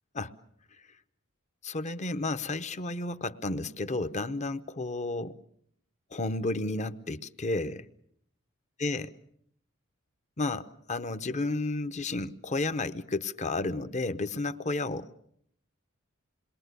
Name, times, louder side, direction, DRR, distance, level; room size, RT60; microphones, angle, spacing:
voice 1, 1.6-5.4 6.1-7.9 8.8-9.1 10.4-15.2, left 2 dB, 35° left, 0.9 m, -32 dB
27.5 x 21.5 x 6.8 m
head